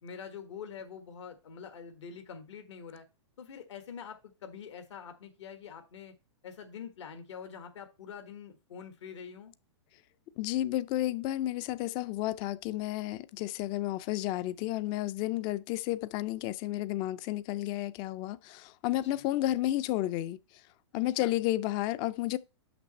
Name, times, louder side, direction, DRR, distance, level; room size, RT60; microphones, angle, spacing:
voice 1, 0.0-3.0 3.4-6.1 6.4-9.5 19.1-19.3 20.9-21.3, left 7 dB, 75° left, 1.5 m, -45 dB
voice 2, 10.4-20.4 20.9-22.4, left 15 dB, 30° left, 0.4 m, -32 dB
6.2 x 6.0 x 4.1 m
hypercardioid pair, 130°, 15 cm